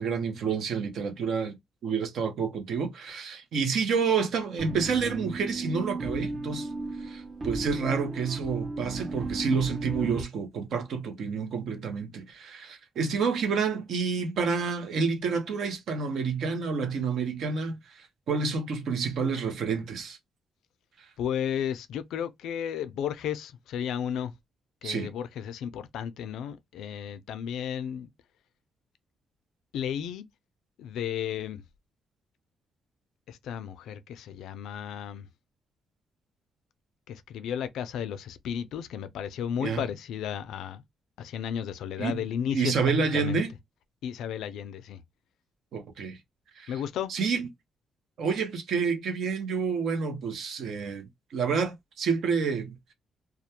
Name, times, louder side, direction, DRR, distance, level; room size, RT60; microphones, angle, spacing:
voice 1, 0.0-1.6 1.8-6.7 7.0-20.2 21.0-21.1 24.8-25.1 39.6-39.9 42.0-42.2 42.5-43.5 45.7-46.2 46.6-46.7 47.1-47.5 48.2-52.9, right 5 dB, 70° right, 0.7 m, -29 dB
sound 1, 4.6-10.2, right 2 dB, 35° right, 0.4 m, -35 dB
voice 2, 21.2-24.3 24.8-28.1 29.7-30.3 30.8-31.6 33.3-35.3 37.1-40.8 41.2-43.4 44.0-45.0 46.7-47.1, left 9 dB, 85° left, 0.3 m, -33 dB
2.3 x 2.1 x 2.8 m
cardioid pair, 115°, 0 cm